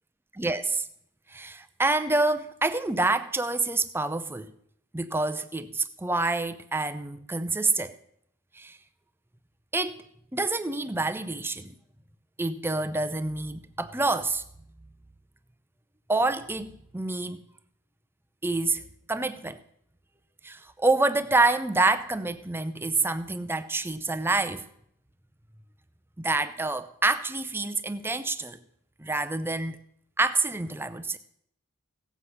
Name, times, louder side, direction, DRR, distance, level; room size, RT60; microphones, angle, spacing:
voice 1, 0.3-0.9 1.3-4.5 4.9-7.9 8.6-8.8 9.7-10.0 10.3-11.7 12.4-14.4 16.1-17.4 18.4-18.8 19.1-19.6 20.4-24.7 26.2-28.6 29.0-29.8 30.2-31.2, right 2 dB, 10° right, 0.5 m, -27 dB
16.5 x 7.9 x 5.6 m
head